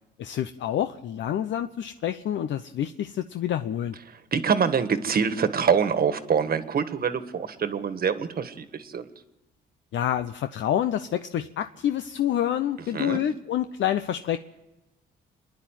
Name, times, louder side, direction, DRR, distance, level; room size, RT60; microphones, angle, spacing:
voice 1, 0.2-4.0 9.9-14.4, left 10 dB, 70° left, 9 dB, 0.8 m, -27 dB
voice 2, 4.3-9.0 12.9-13.2, right 6 dB, 50° right, 10 dB, 1.6 m, -25 dB
27.5 x 10.5 x 9.1 m, 1.0 s
cardioid pair, 90°, 20 cm